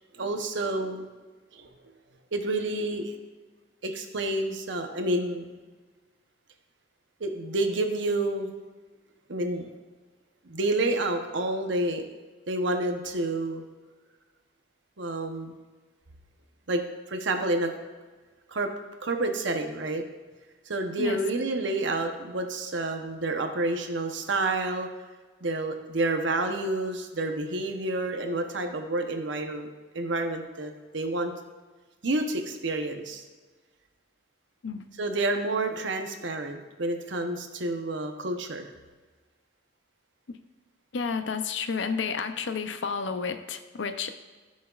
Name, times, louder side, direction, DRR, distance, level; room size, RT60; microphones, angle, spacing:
voice 1, 0.1-1.1 1.5-1.7 2.3-3.1 3.8-5.6 7.2-8.5 9.3-9.7 10.4-12.0 12.5-13.6 15.0-15.5 16.7-16.8 17.1-17.7 18.5-18.7 19.0-20.0 20.7-24.9 25.4-29.7 29.9-31.3 32.0-33.2 35.0-38.7, right 2 dB, 75° right, 5 dB, 0.9 m, -29 dB
voice 2, 40.9-44.1, left 5 dB, 70° left, 9 dB, 0.6 m, -31 dB
14.5 x 6.3 x 2.4 m, 1.3 s
head